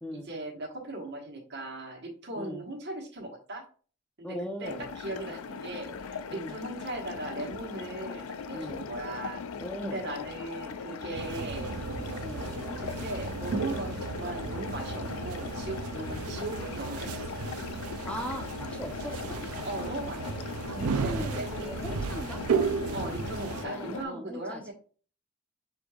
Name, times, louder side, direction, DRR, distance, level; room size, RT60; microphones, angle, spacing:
voice 1, 0.1-3.6 4.2-9.4 9.8-11.8 12.8-17.2 19.6-22.1 22.9-24.7, right 1 dB, 50° right, 0 dB, 1.3 m, -38 dB
voice 2, 4.2-4.9 6.3-6.6 8.5-8.9 9.6-10.1 12.2-12.5 15.9-16.2 18.0-19.5 20.7-22.4 23.6-24.7, equal, 5° left, 3 dB, 0.6 m, -39 dB
sound 1, 4.6-24.0, left 5 dB, 75° left, 0.4 m, -40 dB
sound 2, 11.1-23.6, right 5 dB, 80° right, 0.4 m, -34 dB
6.7 x 3.3 x 2.4 m, 0.40 s
head